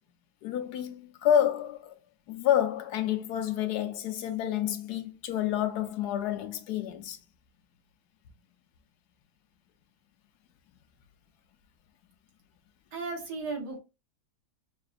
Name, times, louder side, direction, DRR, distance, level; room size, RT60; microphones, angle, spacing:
voice 1, 0.4-1.9 2.3-7.2, left 10 dB, 80° left, 1.2 m, -29 dB
voice 2, 12.9-13.8, right 3 dB, 80° right, 1.8 m, -35 dB
5.7 x 2.5 x 2.4 m
omnidirectional pair, 1.7 m